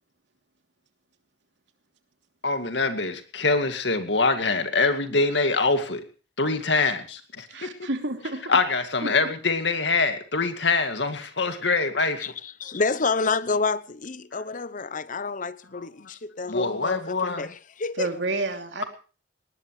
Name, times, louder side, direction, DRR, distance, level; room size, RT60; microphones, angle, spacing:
voice 1, 2.4-6.0 6.4-7.9 8.5-12.3 16.5-17.5, left 3 dB, 70° left, 2.3 m, -24 dB
voice 2, 7.5-8.4 9.0-9.1 18.0-18.8, right 2 dB, 70° right, 3.0 m, -29 dB
voice 3, 12.2-18.1, left 4 dB, 45° left, 0.8 m, -29 dB
19.5 x 19.0 x 3.2 m
head